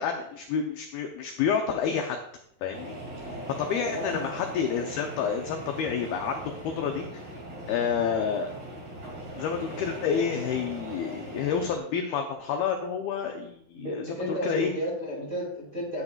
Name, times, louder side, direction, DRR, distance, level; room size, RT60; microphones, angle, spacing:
voice 1, 0.0-2.2 2.6-3.0 3.3-7.2 7.7-8.5 9.4-14.7, left 7 dB, 80° left, 4 dB, 2.2 m, -29 dB
sound 1, 2.7-11.8, right 1 dB, 50° right, 1.4 m, -39 dB
voice 2, 3.9-4.2 13.7-16.0, equal, 20° right, -5 dB, 2.0 m, -33 dB
13.5 x 9.4 x 2.4 m, 0.71 s
omnidirectional pair, 5.3 m